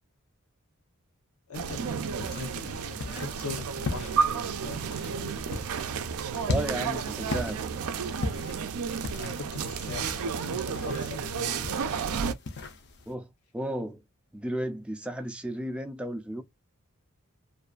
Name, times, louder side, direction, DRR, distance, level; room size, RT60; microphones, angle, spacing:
voice 1, 1.5-5.4 9.1-12.3, left 4 dB, 80° left, 0.8 m, -42 dB
sound 1, 1.5-12.3, right 6 dB, 75° right, 0.4 m, -32 dB
sound 2, 2.2-13.1, left 3 dB, 50° left, 0.5 m, -39 dB
voice 2, 6.5-7.6 13.1-13.3 13.5-14.0 14.3-16.4, right 1 dB, 5° right, 0.4 m, -33 dB
2.5 x 2.2 x 2.4 m
head